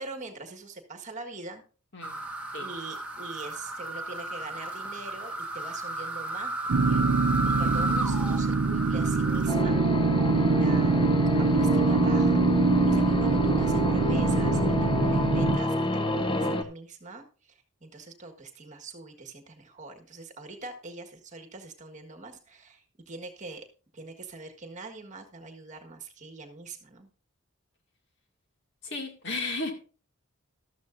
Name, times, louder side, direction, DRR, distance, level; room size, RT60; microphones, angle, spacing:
voice 1, 0.0-1.6 2.6-6.5 6.8-7.0 7.6-9.8 10.4-11.1 11.4-12.4 12.9-23.6 23.9-27.1, right 3 dB, 35° right, 4 dB, 1.6 m, -43 dB
sound 1, 2.0-9.5, right 2 dB, 5° right, 1.5 m, -33 dB
sound 2, 6.7-15.6, right 4 dB, 75° right, 0.6 m, -24 dB
sound 3, 9.5-16.6, left 1 dB, 25° left, 1.0 m, -27 dB
voice 2, 28.8-29.7, left 3 dB, 55° left, 4 dB, 2.2 m, -33 dB
13.0 x 12.5 x 2.6 m, 0.38 s
head